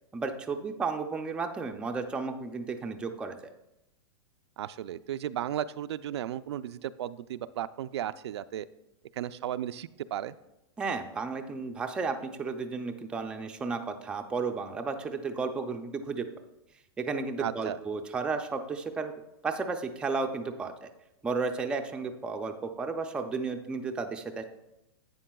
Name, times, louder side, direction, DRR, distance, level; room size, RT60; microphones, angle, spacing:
voice 1, 0.1-3.5 10.8-16.3 17.0-19.1 19.4-20.9 21.2-24.4, right 4 dB, 5° right, 4 dB, 0.4 m, -33 dB
voice 2, 4.6-8.7 9.1-10.4 17.4-17.8, right 11 dB, 85° right, 12 dB, 0.4 m, -35 dB
11.5 x 8.5 x 2.3 m, 0.90 s
supercardioid pair, 160°, 14 cm